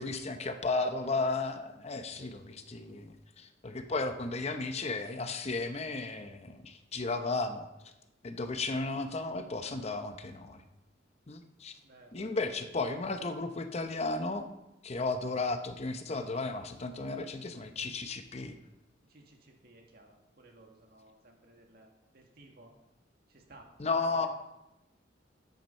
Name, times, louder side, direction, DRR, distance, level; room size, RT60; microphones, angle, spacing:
voice 1, 0.0-7.7 8.2-10.6 11.3-11.7 12.1-14.5 14.8-18.6 23.8-24.3, left 3 dB, 35° left, 8 dB, 0.7 m, -34 dB
voice 2, 11.8-12.3 19.1-22.7 23.3-23.7 24.0-24.3, right 2 dB, 60° right, 2 dB, 1.7 m, -57 dB
11.0 x 9.3 x 4.4 m, 0.94 s
head